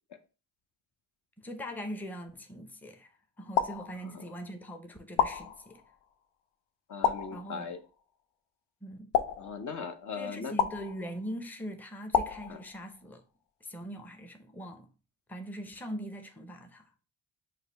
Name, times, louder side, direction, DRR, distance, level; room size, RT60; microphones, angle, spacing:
voice 1, 1.4-3.1 3.4-5.8 7.3-7.7 8.8-9.1 10.2-13.2 13.6-14.9 15.3-16.8, equal, 5° left, 0.6 m, -41 dB
sound 1, 3.6-4.5 5.2-6.1 7.0-7.9 9.1-10.0 10.6-11.4 12.1-13.1, left 8 dB, 85° left, 0.5 m, -32 dB
voice 2, 6.9-7.8 9.4-10.5 12.5-12.6, left 5 dB, 45° left, 0.6 m, -38 dB
4.9 x 2.2 x 3.3 m
supercardioid pair, 50°, 42 cm